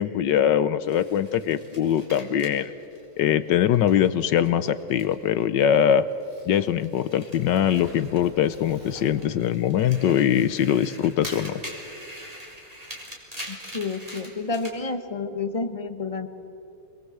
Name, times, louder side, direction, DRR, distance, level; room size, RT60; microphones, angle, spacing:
voice 1, 0.0-2.7 3.2-6.0 6.5-11.6, left 9 dB, 70° left, 14 dB, 1.3 m, -22 dB
sound 1, 0.9-5.4 5.7-8.7 9.1-14.8, equal, 15° right, 4.0 m, -44 dB
Crumpling crinkling, 6.1-10.7 11.1-11.5, right 1 dB, 65° right, 7.1 m, -44 dB
voice 2, 13.5-16.3, left 4 dB, 25° left, 8 dB, 0.9 m, -30 dB
27.0 x 21.5 x 7.9 m, 2.7 s
omnidirectional pair, 2.2 m